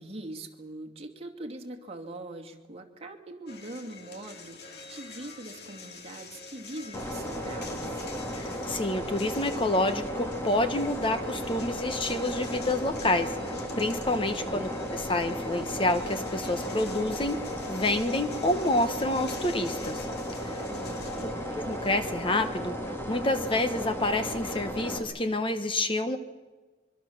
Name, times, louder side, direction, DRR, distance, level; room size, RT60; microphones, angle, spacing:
voice 1, 0.0-8.1 14.3-14.7 20.7-21.5, right 2 dB, 35° right, 3 dB, 2.5 m, -42 dB
sound 1, 3.5-23.0, left 3 dB, 60° left, 2.6 m, -46 dB
sound 2, 6.9-25.0, equal, 15° left, 3.0 m, -35 dB
voice 2, 8.3-13.4 13.8-17.4 17.7-20.1 20.4-20.6 21.1-21.2 21.5-22.8 23.1-26.2, left 2 dB, 30° left, 9 dB, 1.2 m, -28 dB
24.5 x 24.0 x 7.2 m, 1.3 s
head